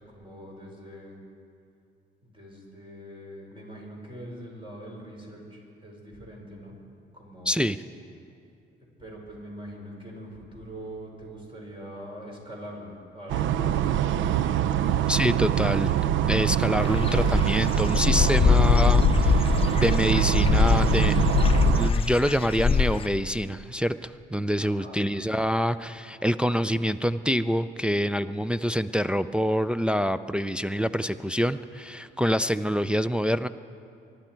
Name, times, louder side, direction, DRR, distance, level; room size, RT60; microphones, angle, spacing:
voice 1, 0.1-1.1 2.2-6.8 7.1-7.7 9.0-15.0 24.6-25.0, equal, 25° right, -2 dB, 4.9 m, -43 dB
voice 2, 7.5-7.8 15.1-15.9 16.3-21.3 21.7-33.5, equal, 5° right, 10 dB, 0.3 m, -26 dB
sound 1, 13.3-21.9, right 10 dB, 75° right, 0.5 m, -24 dB
Dog / Bird, 16.8-23.1, left 5 dB, 30° left, 0.7 m, -23 dB
24.5 x 11.5 x 4.5 m, 2.4 s
cardioid pair, 90°, 20 cm